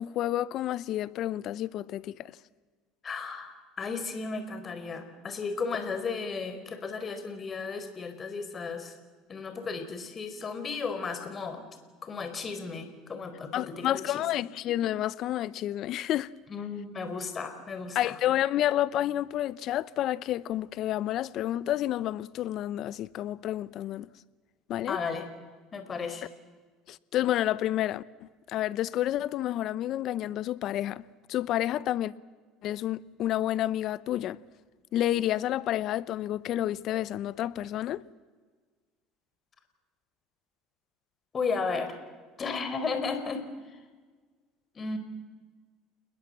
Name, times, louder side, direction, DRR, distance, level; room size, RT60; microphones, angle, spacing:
voice 1, 0.0-2.4 13.5-16.3 17.9-24.1 24.7-25.0 26.9-32.1 32.6-34.4 34.9-38.0, left 13 dB, 55° left, 0.8 m, -30 dB
voice 2, 3.0-8.9 9.3-11.7 12.0-14.3 16.5-18.2 24.9-25.3 25.7-26.3 41.3-42.0 42.4-43.8 44.7-45.0, left 4 dB, 30° left, 4.2 m, -34 dB
29.0 x 20.5 x 7.6 m
supercardioid pair, 100°, 0 cm